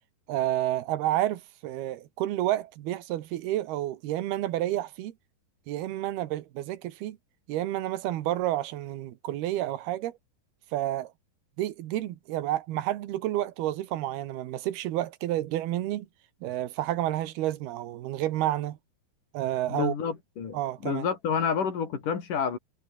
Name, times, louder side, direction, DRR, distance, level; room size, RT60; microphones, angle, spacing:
voice 1, 0.3-5.1 5.7-7.2 7.5-10.2 10.7-11.1 11.6-16.1 16.4-18.8 19.3-20.0 20.5-21.1, right 14 dB, 80° right, 3.3 m, -30 dB
voice 2, 19.7-20.6 20.8-22.6, left 6 dB, 55° left, 5.1 m, -29 dB
omnidirectional pair, 4.4 m